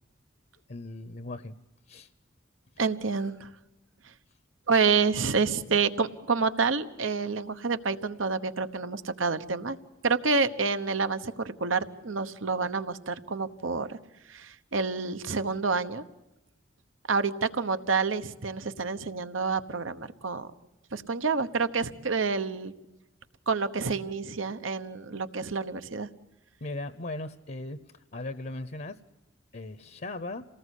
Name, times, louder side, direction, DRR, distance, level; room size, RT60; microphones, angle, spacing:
voice 1, 0.7-1.5 1.9-2.1 26.6-29.0 29.5-30.4, left 2 dB, 50° left, 12 dB, 0.8 m, -38 dB
voice 2, 2.8-3.5 4.7-9.8 10.0-14.0 14.3-16.0 17.1-20.5 20.9-22.7 23.5-26.1, right 4 dB, 90° right, 11 dB, 1.1 m, -28 dB
28.0 x 19.0 x 8.3 m, 0.99 s
head